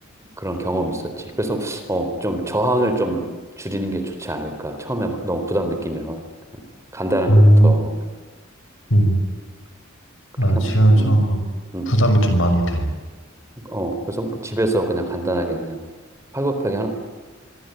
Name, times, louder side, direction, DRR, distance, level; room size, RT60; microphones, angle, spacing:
voice 1, 0.4-3.3 3.6-6.2 6.9-7.9 10.5-11.1 11.7-11.9 13.6-15.8 16.3-16.9, right 1 dB, 15° right, 6 dB, 3.9 m, -25 dB
voice 2, 7.3-7.7 8.9-9.2 10.4-11.4 11.9-12.9, right 1 dB, 65° left, 6 dB, 6.1 m, -15 dB
25.5 x 25.0 x 9.2 m, 1.4 s
head